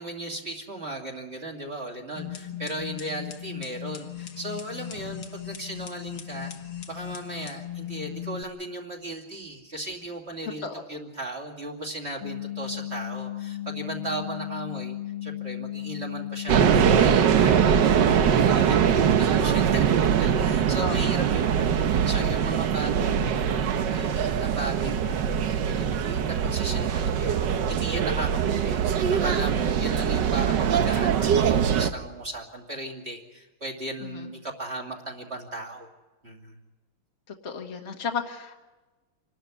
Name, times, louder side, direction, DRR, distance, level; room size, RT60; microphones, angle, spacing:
voice 1, 0.0-6.5 6.9-35.9 36.2-36.6, right 2 dB, 30° right, 1 dB, 2.9 m, -36 dB
sound 1, 2.2-8.4, left 11 dB, 85° left, 2.3 m, -38 dB
sound 2, 12.2-17.2, left 13 dB, 70° left, 1.6 m, -35 dB
sound 3, 16.5-31.9, right 8 dB, 65° right, 1.5 m, -22 dB
voice 2, 20.8-21.1 34.0-34.3 37.4-38.6, left 5 dB, 35° left, 2 dB, 1.7 m, -34 dB
27.5 x 12.5 x 9.7 m, 1.2 s
omnidirectional pair, 2.2 m